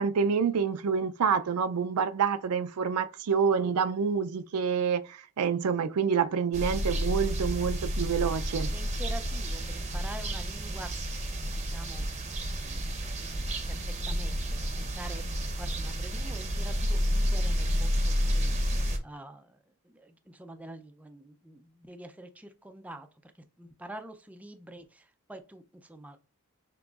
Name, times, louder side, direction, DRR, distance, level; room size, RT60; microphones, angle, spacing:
voice 1, 0.0-8.7, right 6 dB, 85° right, 0.4 m, -27 dB
sound 1, 6.5-19.0, equal, 30° right, 0.7 m, -30 dB
voice 2, 8.7-10.9 11.4-12.0 12.4-13.8 14.0-15.2 15.6-18.7 19.0-19.6 19.8-23.3 23.6-26.3, right 1 dB, 5° right, 0.4 m, -46 dB
6.1 x 3.0 x 2.4 m
head